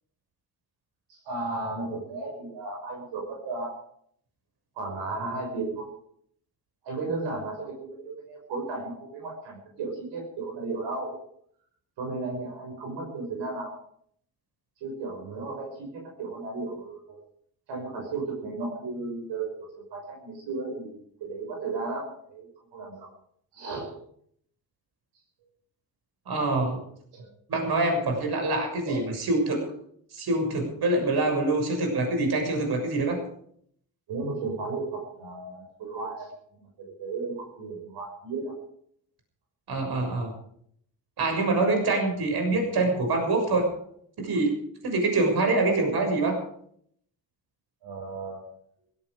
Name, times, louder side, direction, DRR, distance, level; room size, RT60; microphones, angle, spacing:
voice 1, 1.1-3.7 4.8-5.9 6.8-11.1 12.0-13.7 14.8-17.2 17.7-22.5 22.7-23.1 23.5-23.9 27.1-27.3 28.9-29.0 34.1-36.3 36.6-38.5 45.6-46.0 47.8-48.4, right 3 dB, 80° right, 0 dB, 6.2 m, -34 dB
voice 2, 26.3-26.8 27.5-29.6 30.1-33.2 39.7-40.3 41.2-43.7 44.2-44.5 44.8-46.4, right 2 dB, 60° right, 3 dB, 6.7 m, -25 dB
16.5 x 16.0 x 5.1 m, 0.67 s
supercardioid pair, 70°, 42 cm